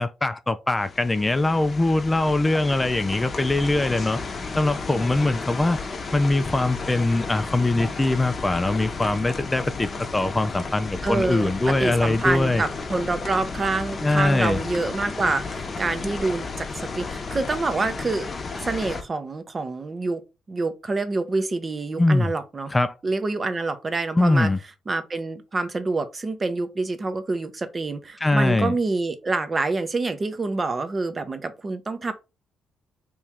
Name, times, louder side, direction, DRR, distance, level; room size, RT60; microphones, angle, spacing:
voice 1, 0.0-4.2 4.6-5.8 6.1-12.6 14.0-14.6 22.0-22.3 22.7-23.0 24.2-24.6 28.2-28.7, left 2 dB, 20° left, 0.3 m, -22 dB
sound 1, 0.8-19.0, left 4 dB, 40° left, 0.7 m, -33 dB
voice 2, 11.0-18.3 18.6-20.2 20.5-22.7 23.0-24.5 24.9-32.1, right 3 dB, 35° right, 0.7 m, -27 dB
3.0 x 2.7 x 3.5 m
supercardioid pair, 65°, 0 cm